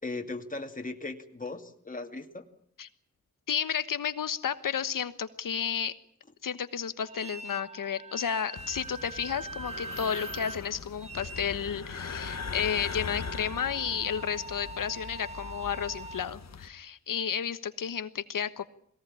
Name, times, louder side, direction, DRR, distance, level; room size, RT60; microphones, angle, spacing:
voice 1, 0.0-2.4, left 3 dB, 25° left, 4 dB, 2.5 m, -38 dB
voice 2, 3.5-6.0 6.4-18.6, left 8 dB, 85° left, 12 dB, 1.3 m, -32 dB
sound 1, 7.0-16.2, right 3 dB, 20° right, 1.8 m, -43 dB
sound 2, 8.6-16.7, left 6 dB, 55° left, 1.4 m, -41 dB
21.5 x 18.0 x 9.9 m, 0.67 s
wide cardioid pair, 80°, 32 cm